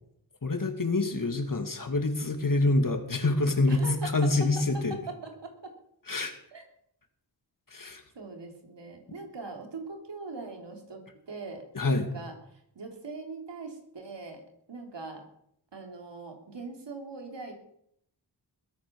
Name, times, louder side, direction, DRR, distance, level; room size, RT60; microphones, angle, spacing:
voice 1, 0.4-4.9 6.1-6.3 7.7-8.0 11.7-12.1, left 2 dB, 50° left, 6 dB, 2.7 m, -26 dB
voice 2, 3.7-5.7 6.5-6.6 8.2-12.3 12.8-14.4 14.7-15.2 15.7-17.5, right 3 dB, 75° right, 3 dB, 3.7 m, -41 dB
21.5 x 8.7 x 7.2 m, 0.73 s
wide cardioid pair, 70°, 43 cm